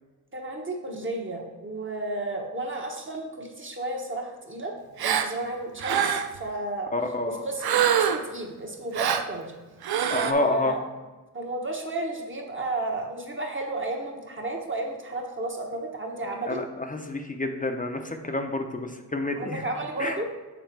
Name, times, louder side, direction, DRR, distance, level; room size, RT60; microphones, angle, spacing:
voice 1, 0.3-4.7 5.0-6.9 7.3-9.5 10.2-10.8 11.3-16.6 19.4-20.3, right 2 dB, 35° right, 1 dB, 1.2 m, -32 dB
Gasp, 5.0-5.3 5.8-6.4 7.6-8.3 8.9-9.3 9.8-10.3, right 8 dB, 85° right, 0.5 m, -24 dB
voice 2, 6.9-7.4 10.1-10.8 16.5-19.6 20.0-20.2, left 2 dB, 20° left, 5 dB, 0.7 m, -29 dB
6.6 x 3.7 x 4.6 m, 1.2 s
cardioid pair, 65°, 37 cm